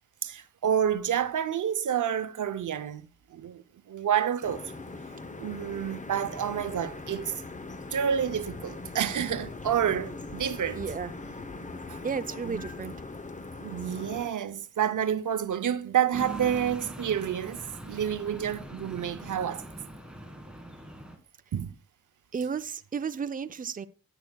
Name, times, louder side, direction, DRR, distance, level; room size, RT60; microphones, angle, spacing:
voice 1, 0.2-4.6 5.4-7.4 7.9-10.8 11.9-12.0 12.5-12.6 13.6-19.7 21.5-21.7, right 9 dB, 90° right, 0.6 m, -29 dB
sound 1, 4.4-14.3, left 3 dB, 25° left, 0.7 m, -41 dB
voice 2, 10.7-11.1 12.0-12.9 22.3-23.9, right 6 dB, 30° right, 0.5 m, -33 dB
sound 2, 16.1-21.2, right 1 dB, 5° right, 1.6 m, -42 dB
17.0 x 8.2 x 2.2 m
wide cardioid pair, 80°, 30 cm